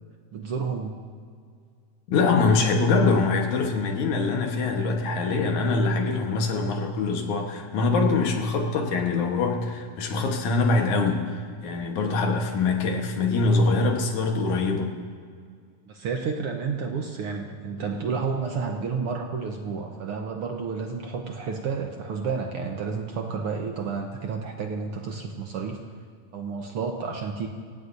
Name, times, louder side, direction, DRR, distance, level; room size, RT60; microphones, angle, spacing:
voice 1, 0.3-1.0 15.9-25.8 26.3-27.5, right 5 dB, 70° right, 3 dB, 1.3 m, -30 dB
voice 2, 2.1-11.2 11.6-14.9, left 3 dB, 70° left, 2 dB, 2.7 m, -23 dB
26.5 x 16.0 x 2.7 m, 2.1 s
omnidirectional pair, 3.7 m